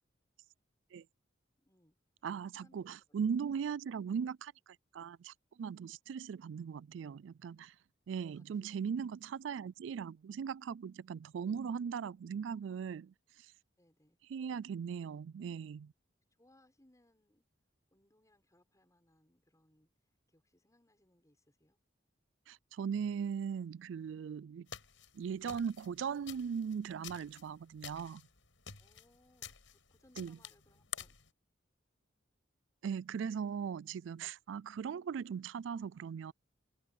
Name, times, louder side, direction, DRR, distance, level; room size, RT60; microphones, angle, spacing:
voice 1, 1.6-2.0 2.5-2.9 8.3-9.0 13.8-14.2 16.4-17.4 17.9-19.9 20.3-21.8 28.8-31.1, left 1 dB, 15° left, 6.9 m, -69 dB
voice 2, 2.2-4.5 4.9-7.7 8.1-13.1 14.3-15.9 22.5-24.7 25.1-28.2 30.2-30.4 32.8-36.3, right 7 dB, 75° right, 0.3 m, -39 dB
sound 1, 24.7-31.3, left 9 dB, 85° left, 6.0 m, -50 dB
head